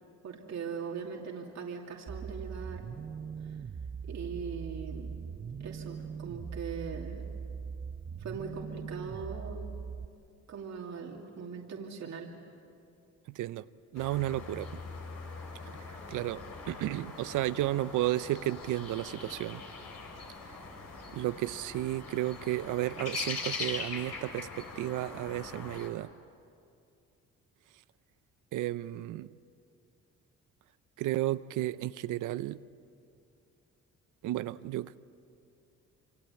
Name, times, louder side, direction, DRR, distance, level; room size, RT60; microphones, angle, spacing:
voice 1, 0.2-2.9 3.4-3.6 4.1-5.1 5.6-7.2 8.2-9.8 10.5-12.3, right 6 dB, 65° right, 0 dB, 2.7 m, -40 dB
sound 1, 2.1-10.1, right 6 dB, 30° right, 0.7 m, -41 dB
voice 2, 13.3-13.7 13.9-14.8 15.8-19.6 21.1-26.1 28.5-29.3 31.0-32.6 34.2-35.0, right 15 dB, 85° right, 15 dB, 0.7 m, -33 dB
sound 2, 13.9-25.9, left 4 dB, 60° left, 4.6 m, -42 dB
27.0 x 25.5 x 8.4 m, 2.5 s
cardioid pair, 90°, 30 cm